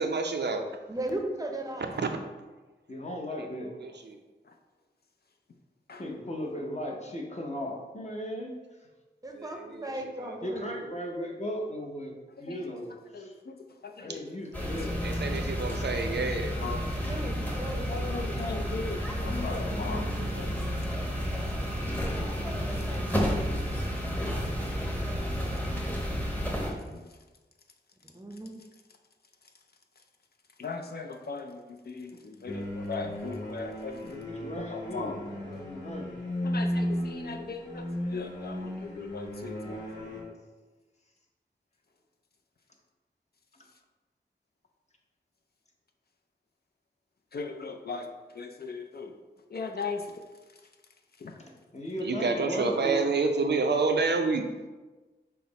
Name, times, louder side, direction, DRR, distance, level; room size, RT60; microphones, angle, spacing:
voice 1, 0.0-0.6 2.0-2.1 3.8-4.2 9.4-9.9 10.2-10.4 15.0-16.5 19.8-20.3 52.0-54.5, right 4 dB, 65° right, 5 dB, 0.5 m, -28 dB
voice 2, 0.9-1.9 9.2-10.7 17.0-18.1 28.1-28.5, right 1 dB, 20° right, 3 dB, 0.6 m, -36 dB
voice 3, 2.9-3.7 6.0-8.5 10.4-12.1 12.4-13.4 14.0-14.9 34.1-36.1 51.4-53.1, equal, 35° left, 0 dB, 0.8 m, -36 dB
voice 4, 13.1-13.6 13.8-14.3 16.6-16.8 17.9-20.6 22.7-22.8 26.5-27.1 28.5-28.7 30.6-34.2 34.6-35.2 36.4-37.8 38.1-40.4 47.3-48.1 48.3-49.1 49.5-50.1 51.2-51.3, left 4 dB, 60° left, 4 dB, 0.4 m, -38 dB
sound 1, 14.5-26.7, equal, 10° left, 0.8 m, -31 dB
sound 2, 32.5-40.2, equal, 80° left, 1.0 m, -35 dB
5.7 x 2.0 x 3.9 m, 1.2 s
wide cardioid pair, 60°, 19 cm